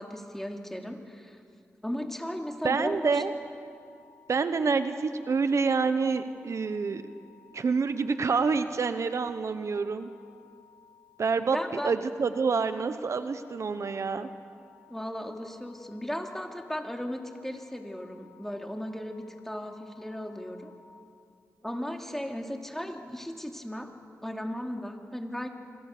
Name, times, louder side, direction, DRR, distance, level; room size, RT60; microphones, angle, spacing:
voice 1, 0.0-1.4 1.8-3.2 11.5-11.9 14.9-20.7 21.6-23.9 24.2-25.5, equal, 5° left, 3 dB, 2.9 m, -36 dB
sound 1, 2.6-20.8, left 10 dB, 90° left, 4.6 m, -58 dB
voice 2, 2.6-3.3 4.3-7.0 7.5-10.1 11.2-14.3, right 5 dB, 65° right, 10 dB, 1.0 m, -27 dB
26.5 x 22.0 x 6.8 m, 2.3 s
cardioid pair, 50°, 5 cm